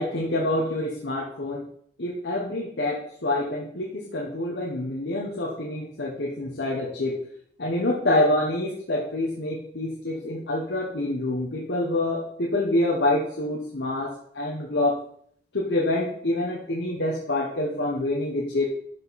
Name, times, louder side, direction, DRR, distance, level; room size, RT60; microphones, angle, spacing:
voice 1, 0.0-1.6 2.0-7.2 7.6-15.0 15.5-18.6, left 1 dB, 80° left, -2 dB, 1.3 m, -26 dB
12.0 x 5.2 x 4.3 m, 0.65 s
head